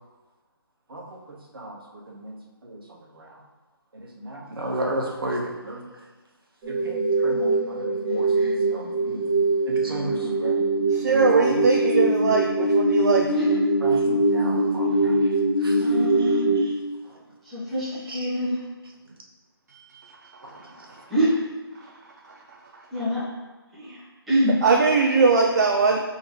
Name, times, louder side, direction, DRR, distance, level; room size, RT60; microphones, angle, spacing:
voice 1, 2.1-2.8 3.2-3.3 4.0-5.8 6.7-9.2 9.7-10.5 11.1-11.6 13.1-13.2 13.8-15.1 15.6-15.8 16.2-16.3 16.6-16.7 18.1-18.3 20.4-20.6, right 1 dB, 65° right, -1 dB, 0.9 m, -34 dB
sound 1, 6.6-16.6, right 2 dB, 25° right, 0.9 m, -22 dB
voice 2, 10.9-13.3 19.7-20.0 24.6-26.0, right 4 dB, 45° right, 1 dB, 0.4 m, -20 dB
voice 3, 15.8-16.5 17.4-18.6 21.1-21.4 22.9-23.2 23.7-24.6, equal, ahead, -12 dB, 0.7 m, -26 dB
5.6 x 2.7 x 3.1 m, 1.3 s
figure-of-eight pair, 155°, 13 cm